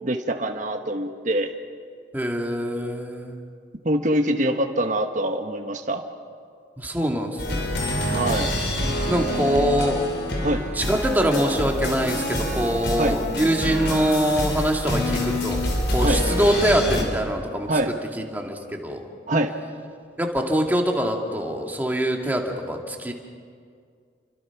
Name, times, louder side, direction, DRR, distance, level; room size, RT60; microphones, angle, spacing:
voice 1, 0.0-1.5 3.8-6.0 8.1-8.5 10.4-10.7 13.0-13.2 16.0-16.2 17.7-17.9 19.3-19.5, right 1 dB, 45° right, 4 dB, 1.2 m, -24 dB
voice 2, 2.1-3.4 6.8-7.7 9.1-10.0 10.7-17.8 18.2-19.0 20.2-23.1, equal, 10° right, 1 dB, 2.2 m, -24 dB
sound 1, 7.4-17.0, left 1 dB, 75° left, 4.7 m, -26 dB
29.5 x 24.5 x 6.0 m, 2.1 s
head